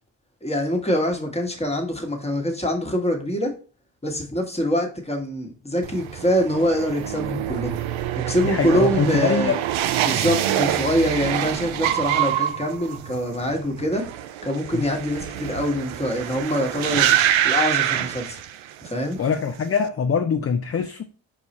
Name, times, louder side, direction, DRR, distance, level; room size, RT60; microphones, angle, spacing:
voice 1, 0.4-3.5 4.0-9.6 10.0-14.1 14.4-18.4 18.8-19.2, equal, 10° left, 1.2 m, -24 dB
sound 1, 5.8-18.9 19.2-19.8, right 11 dB, 70° right, 0.5 m, -25 dB
voice 2, 8.4-9.6 14.7-14.8 19.2-21.0, left 6 dB, 30° left, 0.4 m, -23 dB
4.7 x 2.4 x 4.0 m
supercardioid pair, 50°, 50 cm